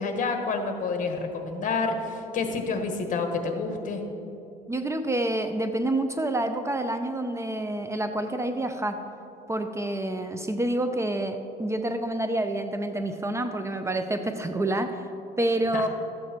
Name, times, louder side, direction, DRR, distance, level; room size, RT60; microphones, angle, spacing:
voice 1, 0.0-4.0 15.7-15.8, left 4 dB, 50° left, 5 dB, 1.4 m, -29 dB
voice 2, 4.7-9.0 9.5-15.0 15.4-15.9, right 1 dB, 15° right, 7 dB, 0.5 m, -28 dB
13.0 x 8.2 x 4.4 m, 2.9 s
cardioid pair, 110°, 17 cm